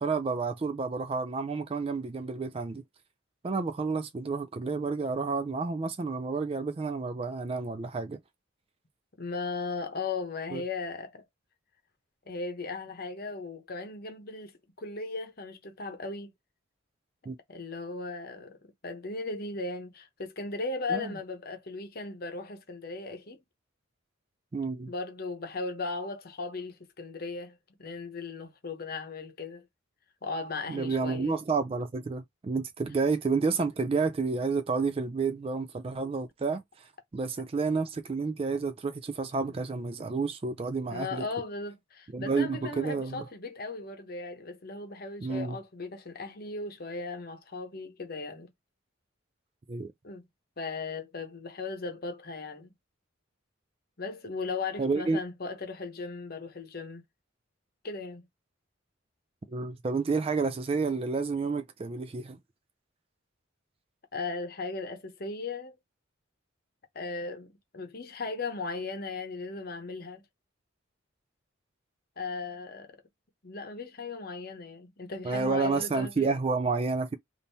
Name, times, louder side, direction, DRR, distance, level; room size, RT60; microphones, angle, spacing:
voice 1, 0.0-2.8 3.4-8.2 10.5-10.6 17.3-17.4 20.9-21.1 24.5-24.9 30.7-36.6 37.1-41.2 42.1-43.2 45.2-45.6 49.7-49.9 54.8-55.2 59.5-62.4 75.2-77.1, right 4 dB, 30° right, 0.3 m, -30 dB
voice 2, 9.2-11.3 12.3-16.3 17.5-23.4 24.9-29.7 30.2-31.3 40.9-48.5 50.0-50.2 50.6-52.7 54.0-57.0 57.8-58.3 64.1-65.8 66.9-70.2 72.2-73.0 73.4-76.4, left 3 dB, 45° left, 0.9 m, -37 dB
3.6 x 2.6 x 2.7 m
head